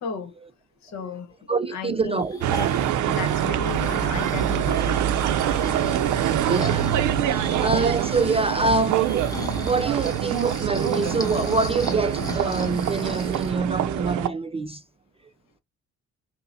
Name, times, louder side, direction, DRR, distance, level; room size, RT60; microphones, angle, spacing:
voice 1, 0.0-0.3 0.8-1.4 1.7-2.3 3.1-5.0 7.3-7.4 13.5-13.6, left 5 dB, 65° left, 1.0 m, -34 dB
voice 2, 1.5-2.4 6.4-6.9 7.3-14.8, right 3 dB, 20° right, 0.3 m, -25 dB
Breathing, 2.2-13.6 14.0-14.1, left 2 dB, 10° left, 1.2 m, -36 dB
sound 1, 2.4-14.3, right 11 dB, 75° right, 0.5 m, -25 dB
5.4 x 2.1 x 2.6 m
cardioid pair, 90°, 30 cm